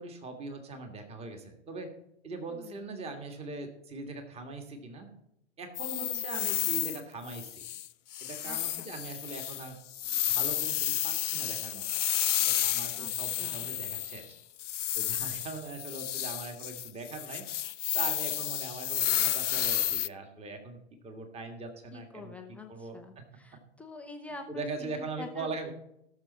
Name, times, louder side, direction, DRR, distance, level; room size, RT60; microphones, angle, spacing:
voice 1, 0.0-1.9 2.2-5.1 5.6-7.7 8.2-9.8 10.2-12.0 12.5-14.4 15.0-17.5 17.9-22.3 22.7-23.2 24.5-25.7, right 3 dB, 15° right, 5 dB, 1.7 m, -41 dB
voice 2, 2.5-2.9 6.0-6.2 8.4-8.9 12.9-13.7 21.9-25.5, left 3 dB, 5° left, 2 dB, 0.4 m, -47 dB
sound 1, 5.8-7.0 7.3-14.3 14.6-20.1, left 12 dB, 80° left, 0.5 m, -31 dB
17.5 x 6.6 x 4.1 m, 0.80 s
hypercardioid pair, 115°, 36 cm